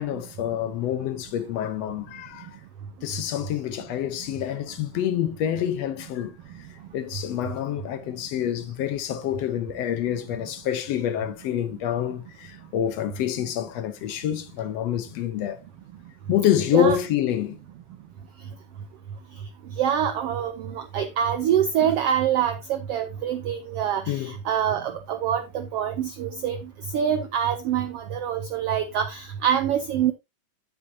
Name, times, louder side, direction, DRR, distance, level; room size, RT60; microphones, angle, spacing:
voice 1, 0.0-2.6 3.0-6.4 6.7-15.6 16.3-17.6 24.1-24.4, left 10 dB, 70° left, 1.7 m, -27 dB
voice 2, 19.8-26.6 26.9-30.1, right 9 dB, 90° right, 1.3 m, -25 dB
9.9 x 8.1 x 2.8 m
omnidirectional pair, 3.7 m